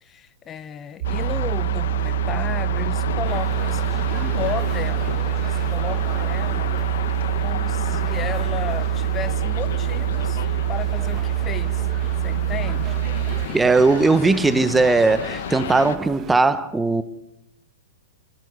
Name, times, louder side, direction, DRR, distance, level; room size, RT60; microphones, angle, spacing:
voice 1, 0.0-6.7 7.4-10.4 10.7-11.9 12.2-13.0, left 8 dB, 25° left, 1.3 m, -34 dB
sound 1, 1.0-16.0, left 10 dB, 65° left, 1.5 m, -32 dB
sound 2, 1.0-13.5, right 15 dB, 60° right, 0.9 m, -25 dB
sound 3, 3.2-16.4, right 9 dB, 25° right, 1.8 m, -40 dB
voice 2, 13.5-17.0, right 3 dB, 10° right, 1.3 m, -18 dB
28.5 x 21.0 x 8.3 m
hypercardioid pair, 125°, 0 cm